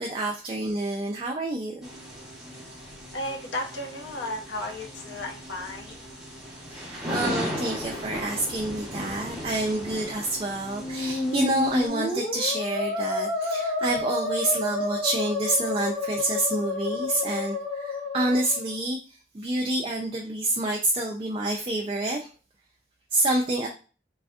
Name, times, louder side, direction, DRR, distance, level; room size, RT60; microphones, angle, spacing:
voice 1, 0.0-1.9 6.7-22.3 23.1-23.7, right 2 dB, 30° right, 0 dB, 0.3 m, -28 dB
sound 1, 1.8-11.9, equal, ahead, 0.8 m, -37 dB
voice 2, 3.1-6.0 6.7-6.9, left 1 dB, 85° left, 2 dB, 0.6 m, -34 dB
Musical instrument, 10.7-18.8, left 2 dB, 60° left, 1.0 m, -30 dB
3.4 x 2.4 x 2.3 m, 0.35 s
head